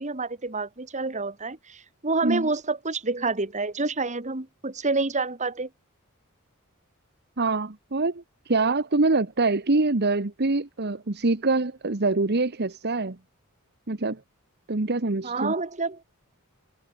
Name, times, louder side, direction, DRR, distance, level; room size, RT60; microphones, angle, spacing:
voice 1, 0.0-5.7 15.2-16.0, right 3 dB, 35° right, 2.0 m, -28 dB
voice 2, 7.4-13.2 13.9-14.2 14.7-15.5, right 3 dB, 50° right, 1.2 m, -25 dB
head